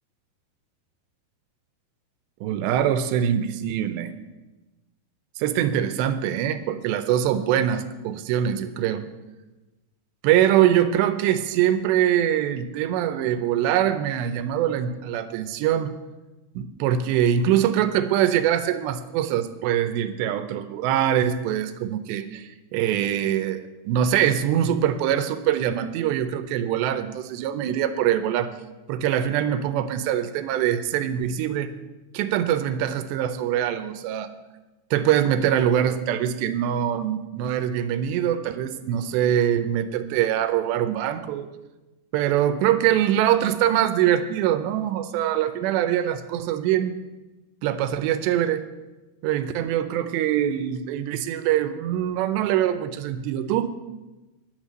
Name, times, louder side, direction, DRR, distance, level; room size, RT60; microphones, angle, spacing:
voice 1, 2.4-4.1 5.4-9.0 10.2-16.0 16.6-28.5 28.9-31.7 32.1-34.3 34.9-41.5 42.1-47.0 47.6-48.6 49.2-53.7, right 10 dB, 90° right, 10 dB, 2.9 m, -23 dB
11.0 x 8.2 x 7.6 m, 1.1 s
omnidirectional pair, 4.9 m